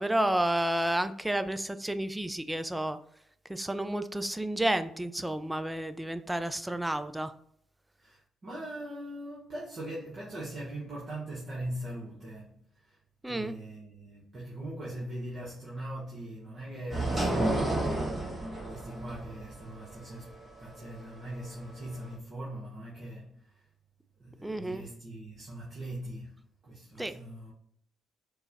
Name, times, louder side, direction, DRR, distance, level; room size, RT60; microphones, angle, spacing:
voice 1, 0.0-3.0 3.5-7.3 13.2-13.5 24.4-24.8 27.0-27.1, right 1 dB, 10° right, 0.3 m, -31 dB
voice 2, 8.0-13.0 13.3-17.9 18.7-23.6 24.2-26.4 26.6-27.5, right 1 dB, 45° right, 0.9 m, -41 dB
sound 1, 16.9-22.1, right 1 dB, 30° right, 1.3 m, -32 dB
4.5 x 2.1 x 2.6 m
figure-of-eight pair, 45°, 0 cm